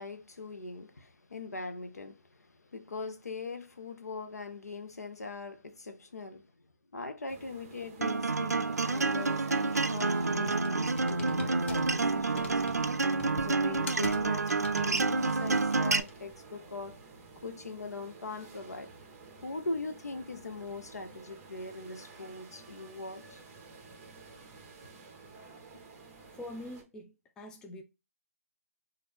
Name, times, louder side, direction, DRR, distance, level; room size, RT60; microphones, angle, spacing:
voice 1, 0.0-6.5 6.9-12.6 13.2-17.0 17.4-18.9 19.4-23.4, left 3 dB, 80° left, 0.8 m, -41 dB
sound 1, 7.3-26.8, right 4 dB, 20° right, 1.0 m, -52 dB
Acoustic guitar, 8.0-16.0, right 3 dB, 90° right, 0.4 m, -28 dB
Computer keyboard, 9.4-16.3, left 3 dB, 45° left, 0.9 m, -47 dB
voice 2, 26.3-27.8, left 1 dB, 10° left, 0.4 m, -44 dB
4.3 x 2.6 x 3.2 m
figure-of-eight pair, 145°, 8 cm